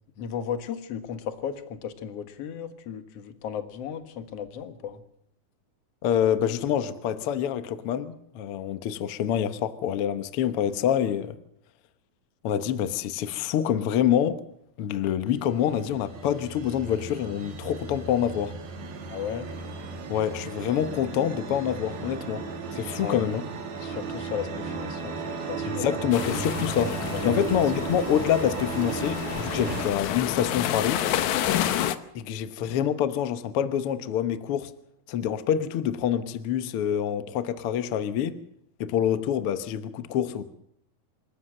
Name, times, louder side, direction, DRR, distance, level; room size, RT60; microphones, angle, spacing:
voice 1, 0.2-5.0 19.1-19.5 23.0-23.2 23.8-25.2 25.5-26.0 27.2-27.3, left 8 dB, 55° left, 8 dB, 2.0 m, -35 dB
voice 2, 6.0-11.4 12.4-14.4 14.8-18.5 20.1-22.4 22.7-23.4 25.7-27.0 27.2-31.1 32.1-34.7 35.1-38.4 38.8-40.4, left 9 dB, 85° left, 11 dB, 1.2 m, -26 dB
sound 1, 15.3-29.9, right 4 dB, 55° right, 3.1 m, -35 dB
sound 2, 26.1-32.0, left 11 dB, 70° left, 1.9 m, -29 dB
27.0 x 13.5 x 7.7 m, 0.73 s
omnidirectional pair, 4.3 m